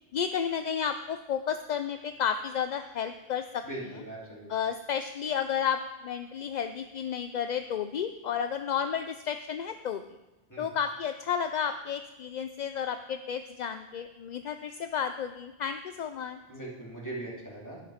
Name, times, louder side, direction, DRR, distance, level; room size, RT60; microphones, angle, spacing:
voice 1, 0.1-3.6 4.5-10.0 10.6-16.4, left 8 dB, 55° left, 9 dB, 0.5 m, -32 dB
voice 2, 3.6-4.5 10.5-10.7 16.5-17.8, right 2 dB, 15° left, -5 dB, 3.1 m, -40 dB
11.5 x 9.8 x 5.0 m, 1.0 s
omnidirectional pair, 1.1 m